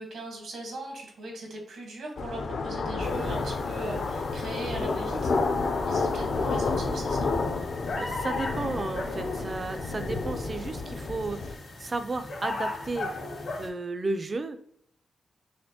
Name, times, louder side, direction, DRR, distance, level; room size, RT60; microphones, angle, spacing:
voice 1, 0.0-5.4 5.9-7.3, right 1 dB, 75° right, 0 dB, 1.3 m, -39 dB
sound 1, 2.2-11.5, left 3 dB, 60° left, 0.4 m, -30 dB
sound 2, 3.0-13.7, left 2 dB, 80° left, 1.3 m, -38 dB
voice 2, 7.9-13.1 13.6-14.6, right 3 dB, 30° right, 9 dB, 0.3 m, -33 dB
4.2 x 2.9 x 2.8 m, 0.72 s
wide cardioid pair, 165°, 0 cm